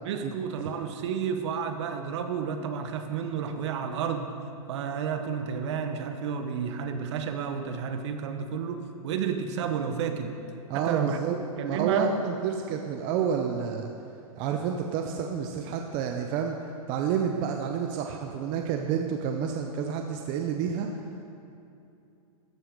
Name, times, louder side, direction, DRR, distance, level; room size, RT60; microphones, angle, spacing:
voice 1, 0.0-4.3 4.7-10.3 10.7-12.1, right 7 dB, 50° right, 7 dB, 1.0 m, -31 dB
voice 2, 10.7-11.4 11.6-13.9 14.4-16.6 16.9-20.9, right 7 dB, 25° right, 3 dB, 0.5 m, -29 dB
14.0 x 7.7 x 5.2 m, 2.7 s
hypercardioid pair, 160°, 19 cm